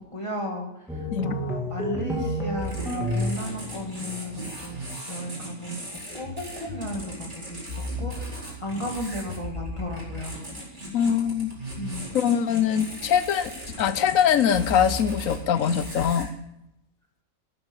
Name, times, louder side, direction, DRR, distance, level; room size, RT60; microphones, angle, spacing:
voice 1, 0.1-5.8 6.1-10.4 11.8-12.0, left 1 dB, 20° left, 1 dB, 2.2 m, -35 dB
sound 1, 0.9-4.5, equal, ahead, 2.5 m, -30 dB
sound 2, 2.5-16.2, equal, 30° right, 4.5 m, -37 dB
voice 2, 10.9-11.5 12.1-13.5 13.8-16.3, left 8 dB, 70° left, 13 dB, 1.1 m, -22 dB
12.5 x 8.9 x 7.2 m, 0.84 s
omnidirectional pair, 1.6 m